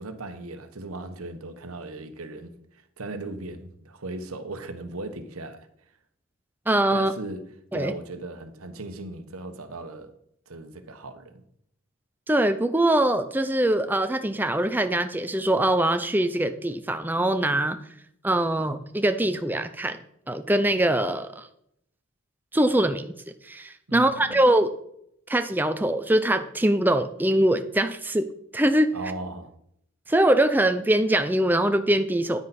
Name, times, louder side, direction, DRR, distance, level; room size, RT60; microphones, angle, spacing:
voice 1, 0.0-5.7 6.9-7.4 7.7-10.1 10.5-11.4 23.9-24.4 28.9-29.5, right 2 dB, 90° right, 1.1 m, -37 dB
voice 2, 6.7-7.1 7.7-7.9 12.3-17.8 18.2-20.0 20.3-21.5 22.5-23.1 23.4-24.7 25.3-28.3 28.5-29.0 30.1-32.4, right 1 dB, 10° right, 0.4 m, -23 dB
9.7 x 9.5 x 4.2 m
head